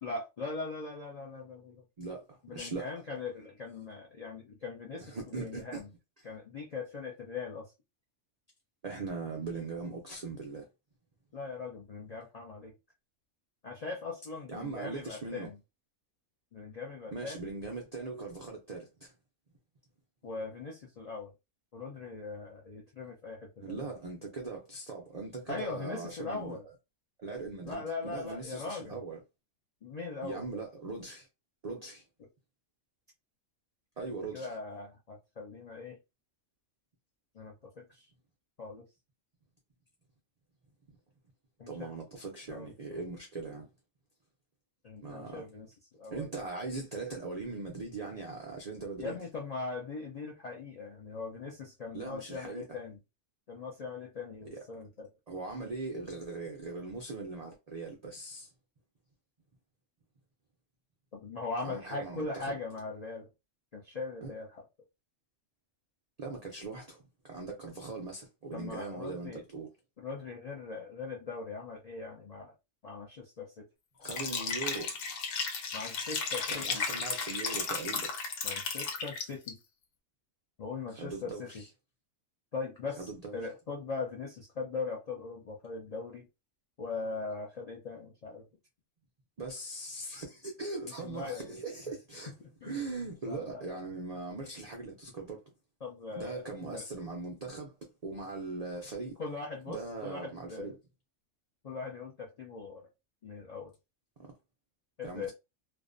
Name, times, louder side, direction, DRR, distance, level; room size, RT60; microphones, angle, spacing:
voice 1, 0.0-1.8 2.4-5.9 6.2-7.7 11.3-12.7 13.6-15.6 16.5-17.5 20.2-21.3 21.7-23.9 25.5-26.6 27.6-29.0 29.8-30.6 34.0-36.0 37.3-38.1 38.6-38.9 41.6-41.9 42.5-43.0 44.8-45.7 46.0-46.3 49.0-53.0 53.5-55.1 61.1-63.3 63.7-64.7 68.5-69.4 70.0-72.5 72.8-73.7 75.7-76.8 78.4-79.6 80.6-81.6 82.5-86.3 86.8-88.5 90.8-91.6 92.4-92.8 93.3-93.8 95.8-96.9 99.2-100.7 101.6-102.9 103.2-103.7 105.0-105.3, left 4 dB, 70° left, 0.3 m, -40 dB
voice 2, 2.0-2.9 5.0-5.8 8.8-10.7 14.5-15.5 17.1-19.1 23.6-26.6 27.2-29.2 30.2-31.3 31.6-32.0 34.0-34.5 41.7-43.7 45.0-45.5 46.1-49.2 51.9-52.8 54.5-54.6 55.3-58.5 61.6-62.6 64.2-64.3 66.2-69.7 74.0-75.0 76.5-78.1 81.0-81.7 83.0-83.3 89.4-92.3 92.6-95.4 96.1-97.7 98.0-99.2 99.7-100.8 104.2-104.3 105.0-105.3, right 3 dB, 80° right, 0.3 m, -40 dB
Liquid, 74.0-79.5, left 5 dB, 90° left, 1.0 m, -34 dB
2.5 x 2.1 x 2.5 m
omnidirectional pair, 1.3 m